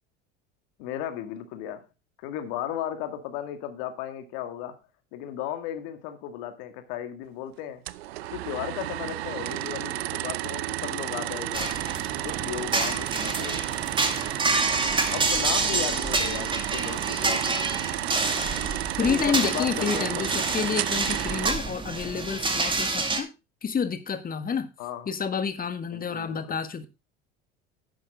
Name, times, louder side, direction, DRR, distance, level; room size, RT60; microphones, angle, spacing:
voice 1, 0.8-1.9 2.2-4.8 5.1-7.8 8.3-11.8 12.2-13.6 15.1-17.6 19.0-20.2 24.8-25.1 25.9-26.6, left 10 dB, 65° left, 2.1 m, -35 dB
sound 1, 7.9-21.5, right 15 dB, 80° right, 0.7 m, -32 dB
sound 2, 11.5-23.2, right 3 dB, 15° right, 2.3 m, -28 dB
voice 2, 19.0-23.3 23.6-24.7 25.1-26.9, left 6 dB, 30° left, 1.6 m, -29 dB
11.5 x 8.5 x 3.6 m
hypercardioid pair, 75°, 31 cm